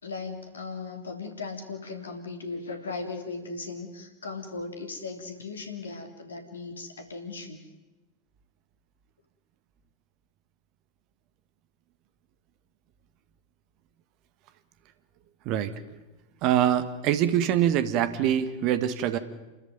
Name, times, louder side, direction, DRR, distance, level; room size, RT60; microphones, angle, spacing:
voice 1, 0.0-7.6, left 4 dB, 70° left, 6 dB, 3.2 m, -37 dB
voice 2, 15.4-15.7 16.4-19.2, right 10 dB, 40° right, 12 dB, 1.6 m, -24 dB
28.5 x 13.5 x 9.3 m, 1.1 s
figure-of-eight pair, 90°, 0 cm